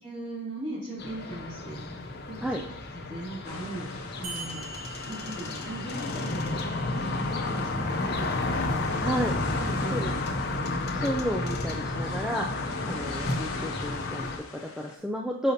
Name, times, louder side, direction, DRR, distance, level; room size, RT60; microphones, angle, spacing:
voice 1, 0.0-2.5 2.9-4.7 5.1-8.3 9.6-10.4 12.7-13.0, right 2 dB, 30° right, -13 dB, 2.6 m, -39 dB
sound 1, 1.0-14.4, left 2 dB, 50° left, 0.7 m, -32 dB
sound 2, 3.4-15.0, left 3 dB, 80° left, 0.9 m, -42 dB
sound 3, 4.2-9.2, right 3 dB, 75° right, 1.3 m, -45 dB
voice 2, 9.0-9.4 9.9-10.1 10.9-15.5, equal, 5° right, 0 dB, 0.4 m, -32 dB
6.5 x 5.7 x 2.7 m, 0.77 s
head